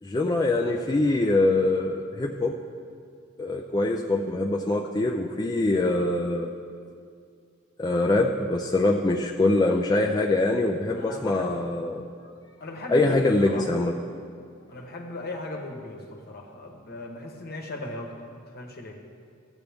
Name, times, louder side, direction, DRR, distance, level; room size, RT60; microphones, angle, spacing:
voice 1, 0.0-2.6 3.4-6.5 7.8-12.0 12.9-13.9, left 2 dB, 20° left, 0 dB, 0.4 m, -24 dB
voice 2, 10.9-11.5 12.6-13.7 14.7-18.1 18.5-19.0, left 1 dB, 50° left, 3 dB, 1.1 m, -36 dB
14.0 x 8.2 x 3.5 m, 2.3 s
head